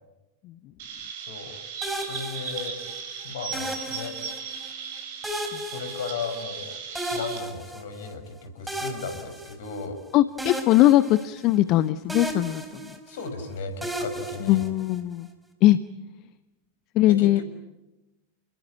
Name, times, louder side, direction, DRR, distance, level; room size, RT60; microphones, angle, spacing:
Chirp tweet, 0.8-7.4, right 6 dB, 50° right, 7.1 m, -37 dB
sound 1, 1.8-3.0 3.5-4.7 5.2-6.6 7.0-8.1 8.7-10.0 10.4-11.8 12.1-13.3 13.8-15.2, right 1 dB, 5° right, 4.5 m, -35 dB
voice 1, 2.1-2.8 3.2-4.1 5.6-6.7 7.1-10.0 13.1-14.6 17.1-17.4, left 4 dB, 60° left, 8 dB, 6.0 m, -35 dB
voice 2, 10.1-12.6 14.5-15.3 15.6-15.8 17.0-17.4, left 15 dB, 40° left, 15 dB, 0.9 m, -20 dB
29.5 x 21.5 x 9.3 m, 0.97 s
figure-of-eight pair, 90°, 0 cm